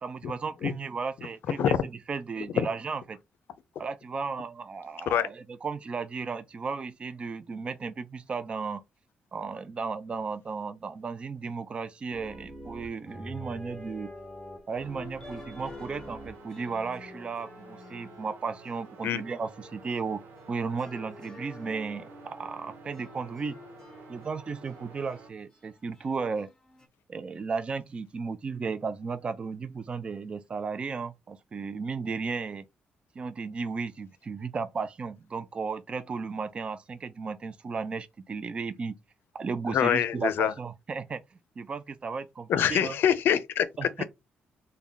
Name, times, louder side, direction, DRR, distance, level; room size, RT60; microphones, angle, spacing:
voice 1, 0.0-1.7 2.1-3.2 3.8-8.8 9.3-14.1 14.7-20.2 20.5-23.6 24.1-26.5 27.1-32.7 33.2-39.0 39.3-41.2 41.6-42.9 43.8-44.0, right 5 dB, 30° right, 0.3 m, -34 dB
voice 2, 1.2-1.8 2.4-2.7 5.1-5.3 19.0-19.2 39.7-40.5 42.5-44.0, left 9 dB, 70° left, 0.5 m, -26 dB
sound 1, 12.1-19.9 20.4-26.9, left 1 dB, 15° left, 0.7 m, -47 dB
sound 2, 14.7-25.3, right 4 dB, 75° right, 1.0 m, -51 dB
3.5 x 2.2 x 3.7 m
cardioid pair, 150°, 4 cm